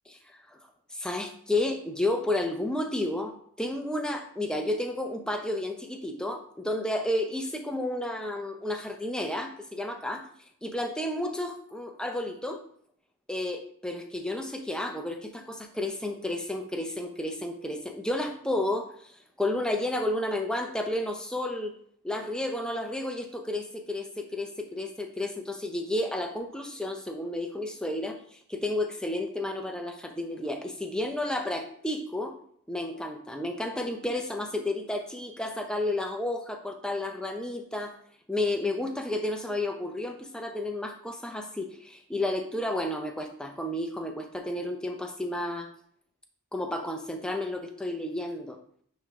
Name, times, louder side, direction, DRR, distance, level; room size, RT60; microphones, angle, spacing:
voice 1, 0.3-0.6 0.9-10.3 10.6-12.6 13.3-21.7 22.0-32.4 32.7-38.0 38.3-45.7 46.5-48.6, left 1 dB, 5° left, 4 dB, 0.6 m, -32 dB
9.5 x 3.2 x 3.6 m, 0.63 s
head